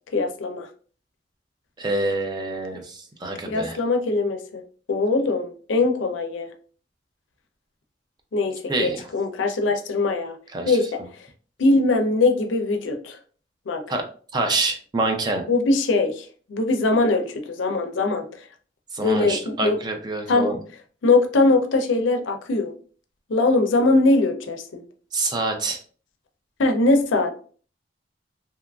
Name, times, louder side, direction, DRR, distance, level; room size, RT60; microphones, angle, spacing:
voice 1, 0.1-0.7 3.5-4.6 4.9-6.5 8.3-10.3 10.6-11.0 11.6-13.2 13.7-13.8 15.5-18.2 19.0-19.8 20.3-20.5 21.0-22.7 23.3-24.8 26.6-27.3, left 2 dB, 85° left, 5 dB, 0.5 m, -21 dB
voice 2, 1.8-3.8 8.7-9.0 10.5-10.8 13.9-14.0 14.3-15.4 18.9-20.6 25.1-25.8, right 2 dB, 25° right, 4 dB, 0.4 m, -26 dB
2.8 x 2.4 x 2.2 m, 0.42 s
head